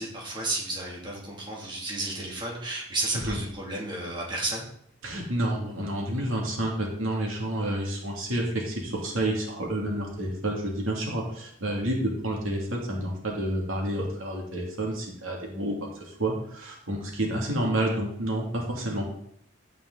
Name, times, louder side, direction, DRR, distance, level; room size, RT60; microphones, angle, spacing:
voice 1, 0.0-4.7, right 2 dB, 25° right, -3 dB, 2.7 m, -32 dB
voice 2, 5.0-19.0, right 1 dB, 85° right, -1 dB, 2.7 m, -29 dB
15.5 x 5.4 x 4.0 m, 0.68 s
head